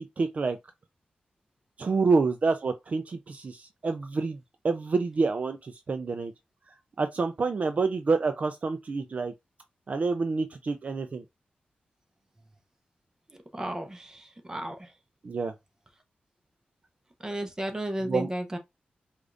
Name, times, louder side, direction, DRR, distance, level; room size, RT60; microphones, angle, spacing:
voice 1, 0.2-0.6 1.8-4.4 4.6-6.3 7.0-9.3 9.9-11.2 15.2-15.5 18.0-18.3, right 4 dB, 45° right, 0.4 m, -27 dB
voice 2, 13.3-14.9 17.2-18.6, right 1 dB, 20° right, 0.8 m, -34 dB
4.9 x 2.4 x 2.5 m
wide cardioid pair, 95°, 3 cm